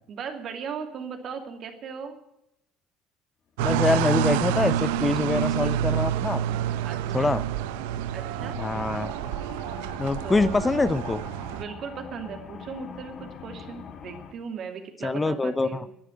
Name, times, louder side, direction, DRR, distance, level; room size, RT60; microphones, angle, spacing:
voice 1, 0.1-2.2 6.8-7.3 8.1-8.6 10.2-10.7 11.5-15.9, right 6 dB, 50° right, 6 dB, 2.4 m, -37 dB
voice 2, 3.6-6.4 7.1-7.4 8.6-9.1 10.0-11.2 15.0-15.8, left 3 dB, 20° left, 15 dB, 0.6 m, -25 dB
sound 1, 3.6-11.6, right 10 dB, 75° right, 0.6 m, -28 dB
sound 2, 4.1-14.3, left 6 dB, 50° left, 1.9 m, -44 dB
12.0 x 10.5 x 9.3 m, 0.83 s
hypercardioid pair, 65°, 0 cm